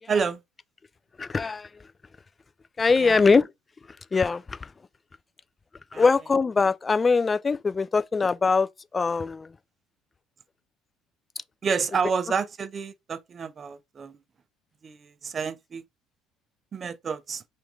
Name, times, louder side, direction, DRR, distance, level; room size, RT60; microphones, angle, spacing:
voice 1, 0.1-0.4 3.0-3.2 5.9-6.0 11.6-14.2 14.8-15.8 16.7-17.4, right 5 dB, 35° right, 0.5 m, -29 dB
voice 2, 1.2-1.7 2.8-3.5 4.1-4.7 5.9-8.7 8.9-9.5, left 4 dB, 25° left, 0.3 m, -22 dB
3.4 x 2.5 x 4.6 m
figure-of-eight pair, 60°, 0 cm